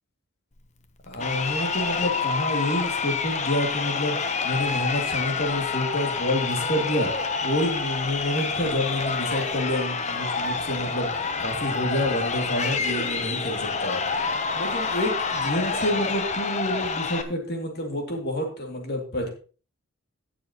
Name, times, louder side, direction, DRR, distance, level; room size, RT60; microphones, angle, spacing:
voice 1, 1.1-4.2 4.4-7.1 7.4-11.1 11.4-14.0 14.5-19.3, left 1 dB, 50° left, 2 dB, 2.5 m, -28 dB
Crowd, 1.1-17.2, left 4 dB, 35° left, 0.8 m, -28 dB
16.5 x 6.9 x 3.0 m, 0.38 s
head